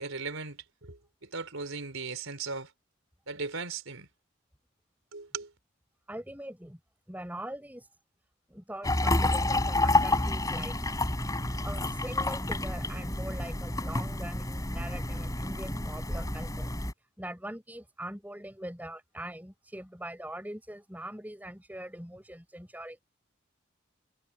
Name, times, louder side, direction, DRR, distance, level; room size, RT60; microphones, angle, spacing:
voice 1, 0.0-2.7 3.3-4.1 5.1-5.5, right 4 dB, 85° right, 4.1 m, -38 dB
voice 2, 6.1-6.8 7.1-7.9 8.5-10.8 11.6-16.7 17.2-23.0, right 1 dB, 10° right, 7.0 m, -42 dB
sound 1, 8.8-16.9, left 2 dB, 15° left, 5.8 m, -29 dB
head